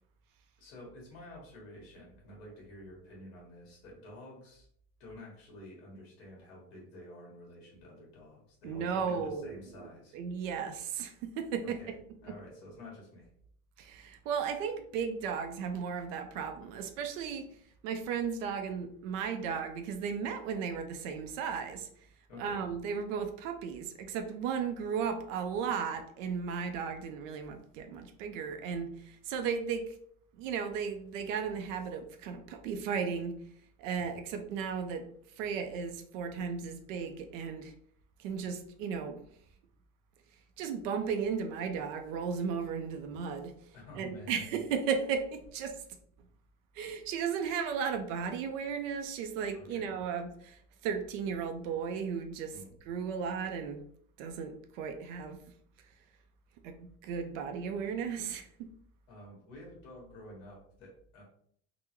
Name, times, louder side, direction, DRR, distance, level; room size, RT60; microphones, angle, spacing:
voice 1, 0.6-4.7 5.0-10.2 11.6-12.0 12.2-13.3 22.3-22.6 34.0-34.1 43.7-44.4 49.5-49.9 52.5-52.7 59.1-61.2, left 1 dB, 55° left, -2 dB, 1.5 m, -50 dB
voice 2, 8.6-11.8 12.3-12.4 13.8-17.5 17.8-21.9 22.4-30.0 30.4-33.4 33.8-35.1 35.4-37.7 38.2-39.2 40.6-43.6 44.0-45.8 46.7-52.5 52.9-53.8 54.2-55.4 56.6-58.7, right 6 dB, 65° right, 7 dB, 0.5 m, -35 dB
3.7 x 2.1 x 2.9 m, 0.64 s
cardioid pair, 175°, 42 cm